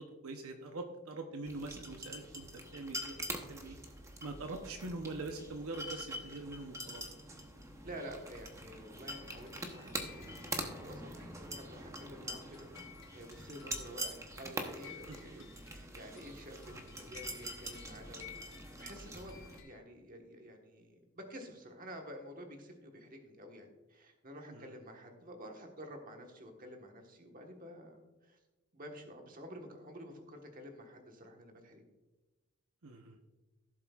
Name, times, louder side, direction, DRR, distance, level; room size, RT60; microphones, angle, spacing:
voice 1, 0.0-3.8 4.2-7.0 15.1-15.2 16.7-16.8 24.5-24.7 32.8-33.2, right 2 dB, 75° right, 4 dB, 0.8 m, -44 dB
sound 1, 1.5-19.6, right 1 dB, 15° right, 0.8 m, -44 dB
voice 2, 7.8-12.7 13.1-18.3 18.7-28.4 28.7-31.8, equal, 40° right, 3 dB, 1.4 m, -50 dB
sound 2, 9.0-11.4 12.5-19.8, left 9 dB, 55° left, 1.1 m, -56 dB
16.5 x 7.4 x 2.4 m, 1.1 s
head